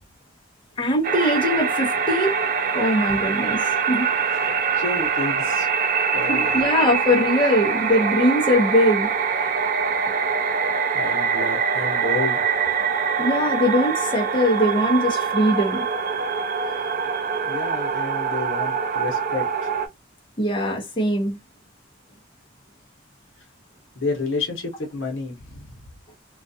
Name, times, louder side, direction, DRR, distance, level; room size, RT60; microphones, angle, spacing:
voice 1, 0.8-2.5 2.7-4.1 4.4-4.6 6.3-9.6 13.2-15.8 20.4-21.4, equal, 25° left, 0.7 m, -21 dB
sound 1, 1.0-19.9, right 6 dB, 45° right, 0.4 m, -24 dB
voice 2, 4.4-5.7 6.1-6.6 10.9-12.4 17.5-19.7 23.9-25.8, left 3 dB, 80° left, 0.8 m, -30 dB
2.3 x 2.3 x 2.5 m
head